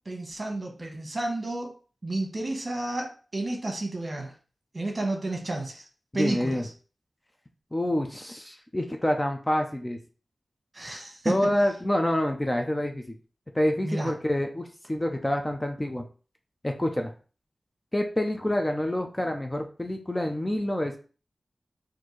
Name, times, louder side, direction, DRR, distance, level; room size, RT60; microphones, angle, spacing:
voice 1, 0.0-1.7 2.0-4.3 4.7-5.9 6.1-6.7 10.7-11.5 13.8-14.1, right 2 dB, 40° right, 1 dB, 1.2 m, -31 dB
voice 2, 6.1-6.6 7.7-10.0 11.2-13.1 13.5-16.0 16.6-17.1 17.9-21.0, left 1 dB, 20° left, 4 dB, 0.6 m, -27 dB
4.3 x 2.7 x 3.1 m, 0.37 s
wide cardioid pair, 70°, 0 cm